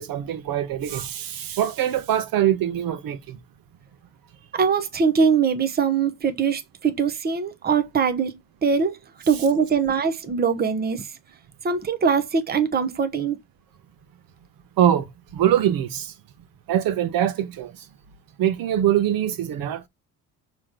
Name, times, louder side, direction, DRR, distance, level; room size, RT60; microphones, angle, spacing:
voice 1, 0.0-3.4 14.8-16.1 16.7-17.7 18.4-19.9, right 11 dB, 75° right, 1.1 m, -23 dB
voice 2, 4.5-8.3 8.6-9.0 9.3-11.1 11.6-13.4, right 6 dB, 25° right, 0.9 m, -22 dB
5.9 x 3.2 x 5.0 m
cardioid pair, 130°, 35 cm